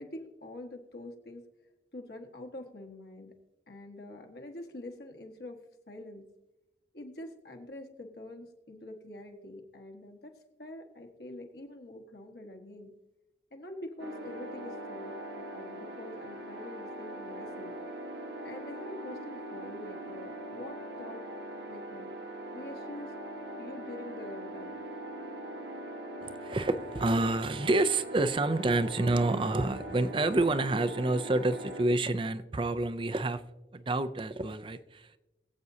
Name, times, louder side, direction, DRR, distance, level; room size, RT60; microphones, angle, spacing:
voice 1, 0.0-1.4 1.9-3.3 3.7-5.6 5.9-6.2 6.9-12.9 13.5-17.7 18.4-21.2 21.7-22.1 22.5-23.1 23.6-24.8, left 1 dB, 60° left, 3 dB, 1.6 m, -45 dB
sound 1, 14.0-31.8, right 1 dB, 65° right, 1.3 m, -41 dB
voice 2, 26.2-33.4 33.7-35.2, right 2 dB, 30° right, 12 dB, 0.5 m, -28 dB
22.0 x 8.0 x 2.8 m, 1.0 s
head